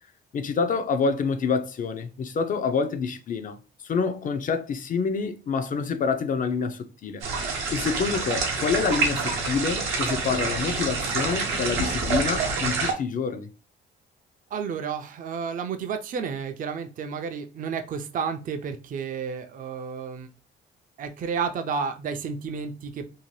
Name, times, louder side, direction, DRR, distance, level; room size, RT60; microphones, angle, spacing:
voice 1, 0.3-3.6 3.8-7.2 7.7-13.5, left 5 dB, 45° left, 0.4 m, -27 dB
sound 1, 7.2-12.9, right 4 dB, 85° right, 0.7 m, -27 dB
voice 2, 14.5-20.3 21.0-23.1, right 6 dB, 45° right, 0.4 m, -31 dB
2.7 x 2.1 x 3.0 m
cardioid pair, 90°, 20 cm